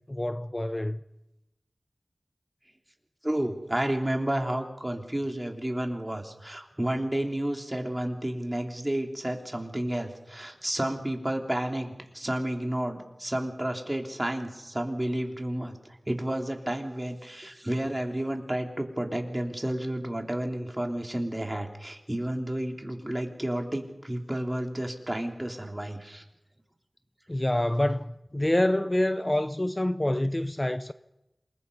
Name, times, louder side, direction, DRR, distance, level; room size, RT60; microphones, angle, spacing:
voice 1, 0.1-1.0 27.3-30.9, left 1 dB, 25° left, 0.7 m, -27 dB
voice 2, 3.2-15.8 16.1-26.2, right 1 dB, 20° right, 3.3 m, -31 dB
27.5 x 20.5 x 5.5 m
wide cardioid pair, 40°, 0 cm